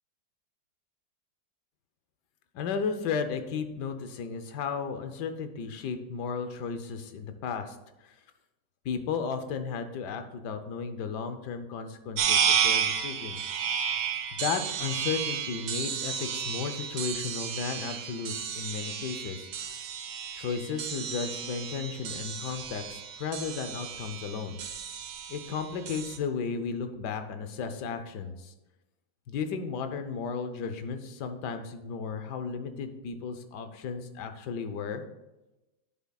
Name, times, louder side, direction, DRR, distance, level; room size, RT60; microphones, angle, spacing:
voice 1, 2.5-7.8 8.0-8.1 8.8-13.5 14.3-19.5 20.4-24.6 25.3-28.5 29.3-35.0, left 6 dB, 70° left, 8 dB, 1.3 m, -34 dB
sound 1, 12.2-26.2, right 8 dB, 65° right, 1.1 m, -32 dB
11.0 x 7.2 x 2.3 m, 1.0 s
omnidirectional pair, 2.0 m